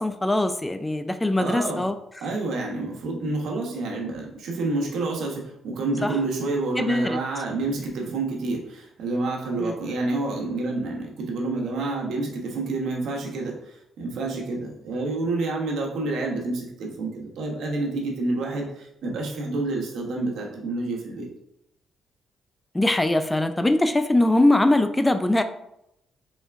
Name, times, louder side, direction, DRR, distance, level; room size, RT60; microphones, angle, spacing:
voice 1, 0.0-2.3 6.0-6.2 6.8-7.2 9.6-9.8 22.7-25.4, left 1 dB, 15° left, 9 dB, 0.3 m, -22 dB
voice 2, 1.4-1.8 2.2-13.5 14.0-21.3, right 2 dB, 75° right, 0 dB, 1.1 m, -28 dB
4.4 x 3.3 x 3.5 m, 0.80 s
cardioid pair, 90°, 0 cm